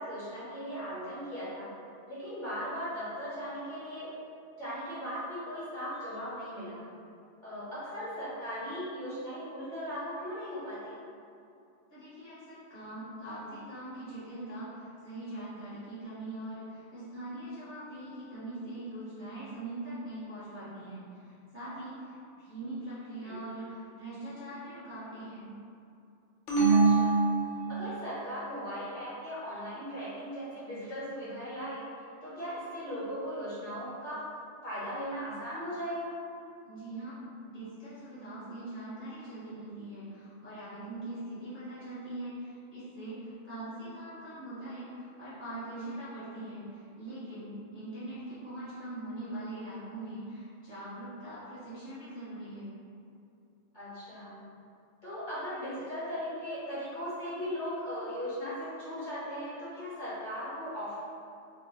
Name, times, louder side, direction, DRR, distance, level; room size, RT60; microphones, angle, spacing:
voice 1, 0.0-1.7 2.1-4.1 4.6-6.8 7.4-11.0 23.2-23.4 26.7-27.2 27.7-31.8 32.2-34.3 34.6-36.1 53.7-54.4 55.0-61.0, equal, 45° left, -12 dB, 1.2 m, -38 dB
voice 2, 11.9-25.5 36.6-37.2 37.4-52.7, right 1 dB, 10° right, -12 dB, 0.8 m, -42 dB
sound 1, 26.5-28.2, right 4 dB, 85° left, 0.9 m, -25 dB
2.5 x 2.1 x 3.8 m, 2.6 s
omnidirectional pair, 1.2 m